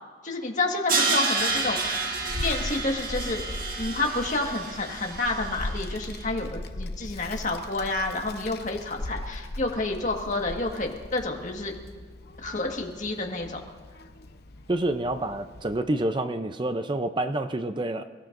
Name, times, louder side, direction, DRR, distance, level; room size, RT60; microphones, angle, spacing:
voice 1, 0.2-2.1 2.4-3.4 3.8-11.8 12.4-13.6, left 2 dB, 40° left, 2 dB, 1.6 m, -29 dB
Crash cymbal, 0.9-5.9, right 3 dB, 50° right, 1.8 m, -29 dB
Child speech kid speaking, 1.4-15.8, left 1 dB, 60° left, 0.8 m, -39 dB
voice 2, 14.7-18.0, right 1 dB, 25° right, 8 dB, 0.5 m, -28 dB
28.5 x 16.5 x 2.6 m, 1.5 s
head